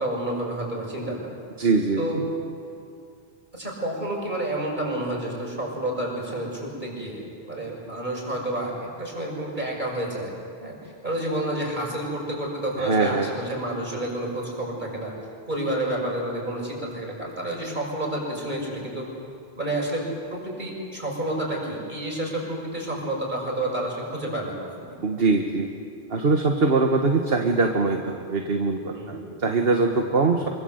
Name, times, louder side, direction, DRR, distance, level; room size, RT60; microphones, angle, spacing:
voice 1, 0.0-1.4 2.0-2.2 3.5-10.3 10.6-15.1 15.5-19.1 19.6-24.9 28.9-29.3 30.2-30.4, right 1 dB, 45° right, -1 dB, 6.9 m, -30 dB
voice 2, 1.6-2.0 12.8-13.3 25.0-25.7 26.1-30.5, right 3 dB, 60° right, 3 dB, 1.7 m, -22 dB
26.0 x 25.0 x 8.0 m, 2.5 s
omnidirectional pair, 1.1 m